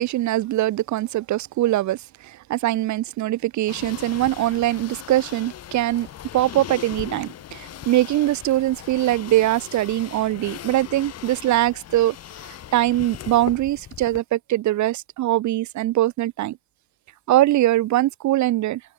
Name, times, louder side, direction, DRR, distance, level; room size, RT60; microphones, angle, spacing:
voice 1, 0.0-6.1 6.3-12.2 12.4-16.6 17.3-18.8, right 15 dB, 50° right, 3.4 m, -22 dB
sound 1, 3.7-14.2, left 11 dB, 45° left, 5.0 m, -39 dB
hypercardioid pair, 90°, 36 cm